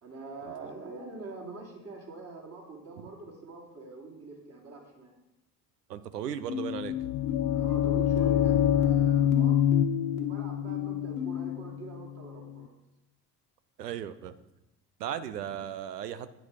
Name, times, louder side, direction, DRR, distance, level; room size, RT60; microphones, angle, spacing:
voice 1, 0.0-5.1 7.5-9.6 10.1-12.7, right 3 dB, 30° right, -2 dB, 2.9 m, -44 dB
voice 2, 5.9-6.9 13.8-14.4 15.0-16.3, right 9 dB, 75° right, 13 dB, 0.7 m, -36 dB
sound 1, 6.5-11.6, left 12 dB, 65° left, 1.5 m, -35 dB
sound 2, 6.7-12.6, left 10 dB, 40° left, 0.5 m, -26 dB
9.2 x 6.0 x 4.9 m, 0.91 s
figure-of-eight pair, 60°, 48 cm